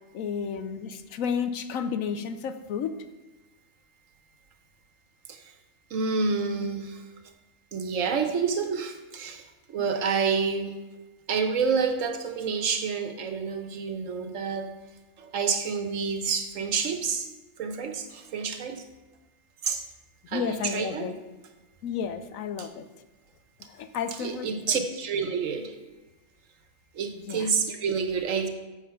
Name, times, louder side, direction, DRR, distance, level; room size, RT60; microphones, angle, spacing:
voice 1, 0.1-3.0 20.3-21.2 21.8-22.9 23.6-24.8 27.1-27.5, left 7 dB, 80° left, 10 dB, 1.1 m, -32 dB
voice 2, 5.9-7.0 7.7-10.8 11.3-14.7 15.2-17.3 17.6-18.8 19.6-19.8 20.3-21.1 22.6-22.7 24.2-25.8 26.9-28.5, right 5 dB, 70° right, 6 dB, 1.2 m, -28 dB
7.4 x 6.7 x 5.6 m, 1.1 s
omnidirectional pair, 1.4 m